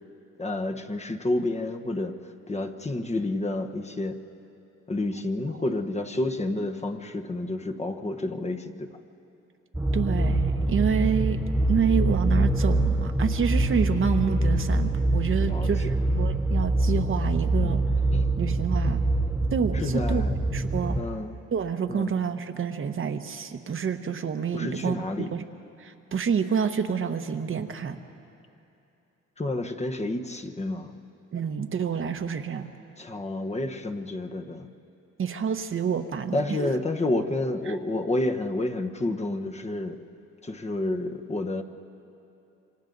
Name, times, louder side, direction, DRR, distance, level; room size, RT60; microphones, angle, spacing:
voice 1, 0.4-2.2 2.5-4.2 4.9-9.0 14.4-14.7 15.4-15.9 17.6-17.7 18.1-18.2 19.7-20.3 21.0-21.4 21.9-22.1 24.5-25.3 29.4-30.9 33.0-34.7 36.3-40.0 40.4-41.6, left 2 dB, 20° left, 4 dB, 1.1 m, -30 dB
sound 1, 9.7-21.0, right 2 dB, 5° right, 0.7 m, -24 dB
voice 2, 9.9-11.4 11.7-17.8 18.4-19.0 19.5-20.2 20.5-21.0 21.5-25.4 25.8-28.0 31.3-32.7 35.2-36.6 37.7-37.8, right 6 dB, 45° right, 6 dB, 1.1 m, -28 dB
28.0 x 24.5 x 4.0 m, 2.8 s
cardioid pair, 90°, 30 cm